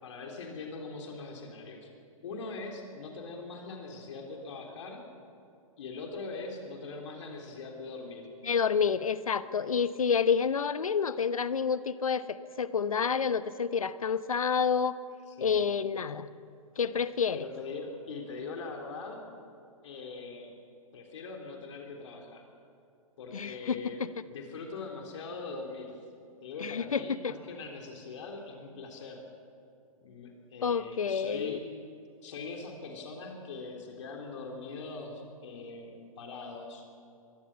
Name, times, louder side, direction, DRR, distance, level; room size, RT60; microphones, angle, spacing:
voice 1, 0.0-1.9 2.2-5.0 5.8-8.3 15.4-15.7 17.3-19.3 19.8-20.5 20.9-22.5 23.2-26.0 26.4-29.2 30.0-31.7 32.2-36.9, left 3 dB, 55° left, 2 dB, 3.6 m, -42 dB
voice 2, 8.4-15.0 15.4-16.3 16.8-17.4 23.3-23.8 26.6-27.3 30.6-31.6, left 6 dB, 75° left, 15 dB, 1.0 m, -29 dB
23.0 x 18.5 x 7.3 m, 2.5 s
figure-of-eight pair, 115°, 18 cm